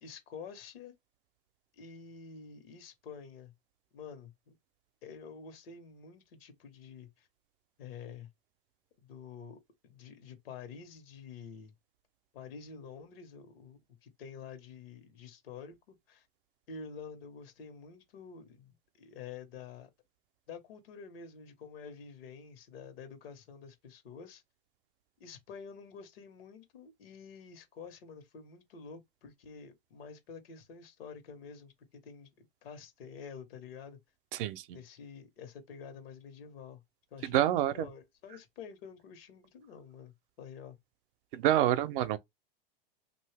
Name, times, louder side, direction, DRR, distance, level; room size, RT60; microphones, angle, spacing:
voice 1, 0.0-0.9 1.7-3.5 3.9-4.5 5.0-7.3 7.8-8.3 9.0-9.6 9.8-11.7 12.3-16.3 16.7-19.9 20.5-24.4 25.2-34.0 34.7-36.8 37.1-40.8, left 6 dB, 80° left, 1.3 m, -48 dB
voice 2, 34.3-34.8 37.2-37.9 41.3-42.2, right 12 dB, 65° right, 0.6 m, -28 dB
2.8 x 2.6 x 3.3 m
supercardioid pair, 130°, 29 cm